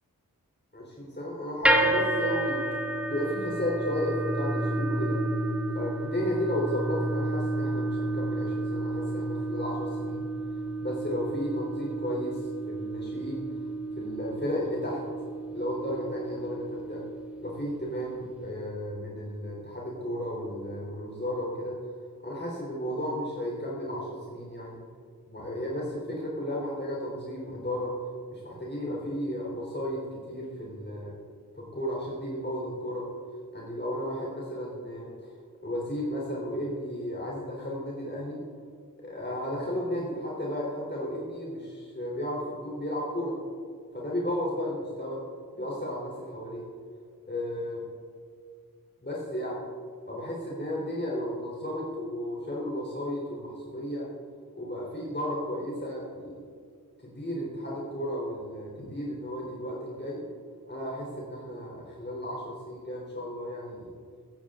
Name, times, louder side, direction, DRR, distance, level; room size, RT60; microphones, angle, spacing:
voice 1, 0.7-2.6 3.1-5.2 5.7-10.2 10.8-13.4 14.0-15.0 15.5-17.0 17.4-21.8 22.2-24.8 25.3-27.9 28.3-31.1 31.6-33.1 33.5-35.1 35.6-38.4 39.0-43.4 43.9-45.2 45.5-46.7 47.3-47.8 49.0-49.6 50.1-54.1 54.6-56.4 57.0-60.2 60.7-63.9, equal, 30° left, -5 dB, 3.7 m, -33 dB
sound 1, 1.6-17.9, right 1 dB, 5° right, 2.8 m, -31 dB
16.0 x 15.0 x 3.8 m, 2.2 s
wide cardioid pair, 50°, 36 cm